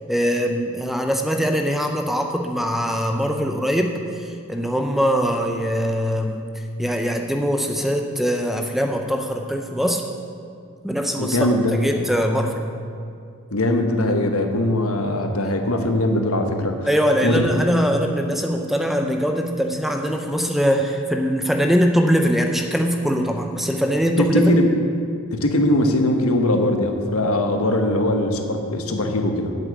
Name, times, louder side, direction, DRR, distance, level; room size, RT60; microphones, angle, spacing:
voice 1, 0.1-6.5 6.8-10.0 10.8-12.6 16.9-24.6, equal, ahead, 4 dB, 0.5 m, -22 dB
voice 2, 11.2-11.8 13.5-16.8 17.2-17.4 24.2-24.7 25.3-29.5, left 1 dB, 75° left, 5 dB, 1.1 m, -21 dB
8.1 x 7.5 x 8.1 m, 2.3 s
head